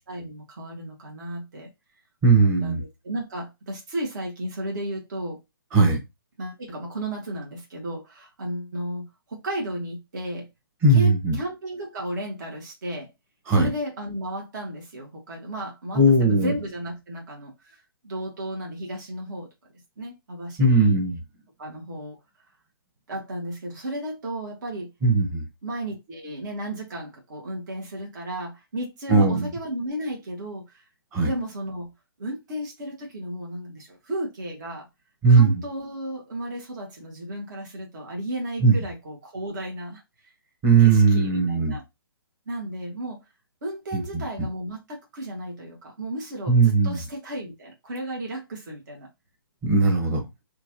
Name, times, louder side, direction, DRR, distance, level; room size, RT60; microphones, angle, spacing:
voice 1, 0.1-1.7 2.3-5.4 6.4-10.5 10.9-13.1 13.5-19.5 20.0-21.0 21.6-22.2 23.1-24.9 25.6-30.8 31.3-31.9 32.2-34.9 35.3-40.3 40.8-41.8 42.5-43.2 43.6-49.1, right 1 dB, 50° right, 1.4 m, -34 dB
voice 2, 2.2-2.8 5.7-6.0 10.8-11.3 13.5-13.7 15.9-16.5 20.6-21.2 25.0-25.4 29.1-29.5 31.1-31.3 35.2-35.5 38.6-38.7 40.6-41.8 43.9-44.0 46.5-47.0 49.6-50.2, right 3 dB, 20° right, 1.2 m, -18 dB
4.5 x 2.5 x 2.9 m
figure-of-eight pair, 135°, 12 cm